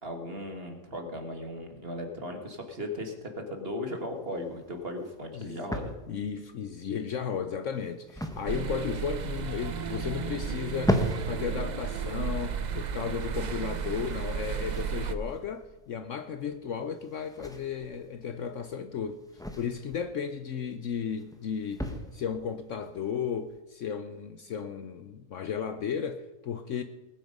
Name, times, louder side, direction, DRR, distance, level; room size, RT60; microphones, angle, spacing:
voice 1, 0.0-5.9, left 1 dB, 40° right, 4 dB, 2.0 m, -37 dB
sound 1, 3.9-23.6, equal, 5° left, 1.1 m, -38 dB
voice 2, 6.1-19.2 19.5-26.8, left 7 dB, 60° left, 9 dB, 0.9 m, -34 dB
sound 2, 8.5-15.2, right 7 dB, 60° right, 0.4 m, -33 dB
20.0 x 8.8 x 5.3 m, 1.1 s
omnidirectional pair, 1.7 m